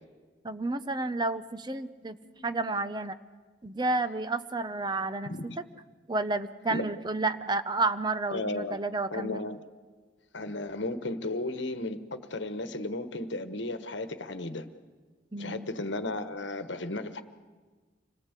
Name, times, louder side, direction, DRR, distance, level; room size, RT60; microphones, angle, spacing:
voice 1, 0.4-2.2 2.4-3.2 3.6-5.5 6.1-9.4 15.3-15.7, right 2 dB, 20° right, 12 dB, 0.7 m, -31 dB
voice 2, 5.2-5.6 6.7-6.8 8.3-8.8 9.1-9.6 10.3-14.6 15.4-17.2, left 2 dB, 65° left, 10 dB, 1.3 m, -34 dB
26.5 x 18.0 x 8.3 m, 1.4 s
head